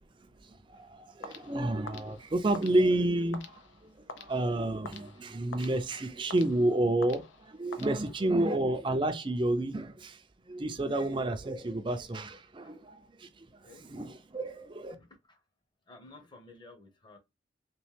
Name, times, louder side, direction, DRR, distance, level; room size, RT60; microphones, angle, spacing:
voice 1, 0.4-10.2 10.5-15.0, right 1 dB, 25° right, 0.4 m, -30 dB
sound 1, 1.2-8.5, left 4 dB, 85° left, 0.6 m, -48 dB
voice 2, 7.9-8.3 12.6-12.7 13.6-13.8 14.9-15.4 15.9-17.2, left 2 dB, 25° left, 0.8 m, -54 dB
3.1 x 3.1 x 3.2 m
head